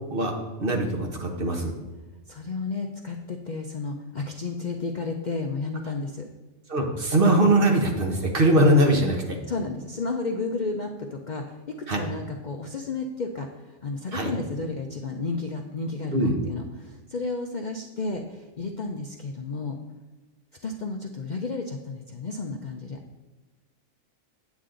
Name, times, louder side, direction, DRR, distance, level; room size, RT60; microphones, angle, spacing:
voice 1, 0.6-1.7 6.7-9.4 11.9-12.0 14.1-14.3 16.1-16.4, right 1 dB, 45° right, 2 dB, 1.3 m, -21 dB
voice 2, 2.3-6.3 9.5-19.8 20.6-23.0, left 3 dB, 50° left, 2 dB, 0.6 m, -32 dB
8.3 x 8.2 x 3.8 m, 1.2 s
omnidirectional pair, 1.3 m